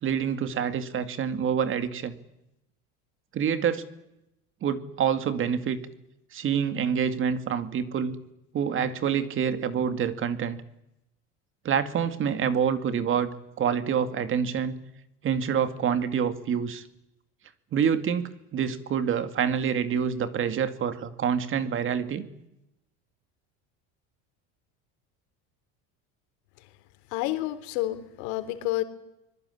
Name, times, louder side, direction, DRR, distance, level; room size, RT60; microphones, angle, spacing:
voice 1, 0.0-2.2 3.3-3.9 4.6-5.8 6.3-8.2 8.5-10.6 11.6-13.3 13.6-14.8 15.2-16.8 17.7-22.3, right 7 dB, 35° right, 10 dB, 2.3 m, -27 dB
voice 2, 27.1-28.8, left 16 dB, 85° left, 10 dB, 3.6 m, -30 dB
24.5 x 21.5 x 9.9 m, 0.86 s
cardioid pair, 150°, 35 cm